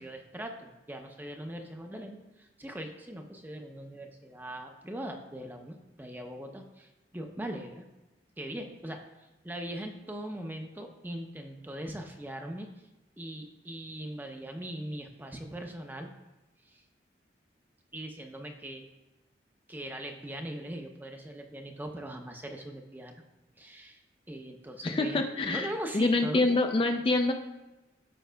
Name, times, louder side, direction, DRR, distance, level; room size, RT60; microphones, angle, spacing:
voice 1, 0.0-7.9 8.4-9.1 9.4-12.7 13.2-16.1 16.6-16.8 17.9-18.9 19.7-23.2 23.6-24.0 24.3-26.5, right 1 dB, 10° right, 3 dB, 0.6 m, -40 dB
voice 2, 24.8-27.3, left 2 dB, 30° left, 5 dB, 0.4 m, -26 dB
14.0 x 5.3 x 2.3 m, 1.0 s
head